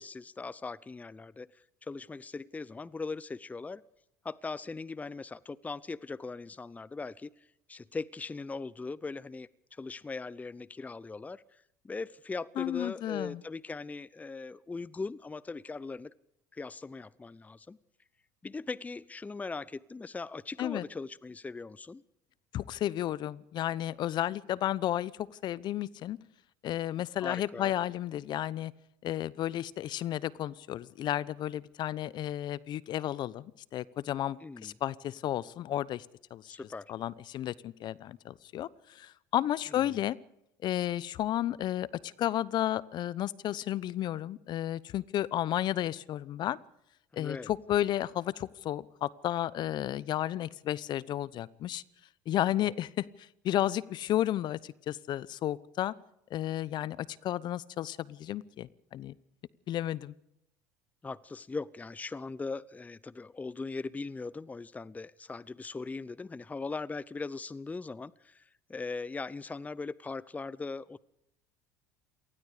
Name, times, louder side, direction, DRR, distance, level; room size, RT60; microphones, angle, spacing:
voice 1, 0.0-3.8 4.2-16.1 16.5-17.8 18.4-22.0 27.2-27.7 34.4-34.8 36.5-36.9 39.7-40.0 47.1-47.5 52.6-52.7 61.0-71.0, left 4 dB, 15° left, 21 dB, 0.7 m, -40 dB
voice 2, 12.6-13.4 20.6-20.8 22.5-26.2 26.6-28.7 29.0-36.1 36.3-36.6 36.9-40.2 40.6-46.6 47.1-51.8 52.3-55.9 56.3-59.1 59.7-60.1, left 12 dB, 55° left, 21 dB, 0.9 m, -32 dB
26.5 x 19.5 x 5.0 m, 0.81 s
hypercardioid pair, 80°, 9 cm